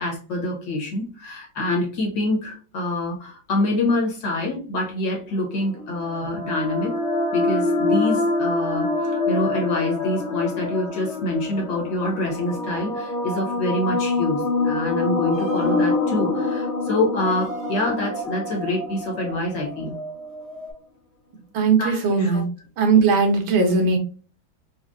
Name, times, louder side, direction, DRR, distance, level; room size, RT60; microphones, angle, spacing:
voice 1, 0.0-6.9 7.3-20.0 21.8-22.4, left 2 dB, 70° left, 0 dB, 2.0 m, -26 dB
sound 1, 5.5-19.7, left 3 dB, 45° left, 1.1 m, -26 dB
sound 2, 15.3-20.7, right 3 dB, 25° right, 0.9 m, -36 dB
voice 2, 21.5-22.5 22.8-24.0, right 4 dB, 80° right, 3 dB, 1.7 m, -18 dB
4.9 x 2.4 x 2.5 m, 0.38 s
omnidirectional pair, 2.1 m